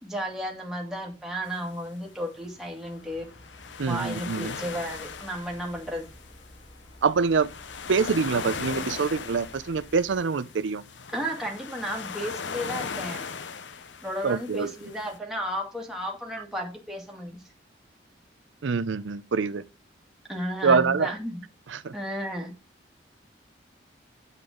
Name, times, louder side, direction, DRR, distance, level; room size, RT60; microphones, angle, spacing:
voice 1, 0.0-3.3 3.9-6.1 11.1-13.3 14.0-17.5 20.3-21.4 21.9-22.5, equal, 5° right, 2.3 m, -33 dB
sound 1, 1.5-15.2, left 5 dB, 80° left, 0.7 m, -39 dB
sound 2, 3.0-10.2, equal, 30° left, 3.1 m, -52 dB
voice 2, 3.8-4.5 7.0-7.5 7.9-10.8 14.2-14.7 18.6-19.6 20.6-21.1 21.7-21.9, right 5 dB, 85° right, 0.5 m, -25 dB
8.6 x 8.2 x 3.8 m
head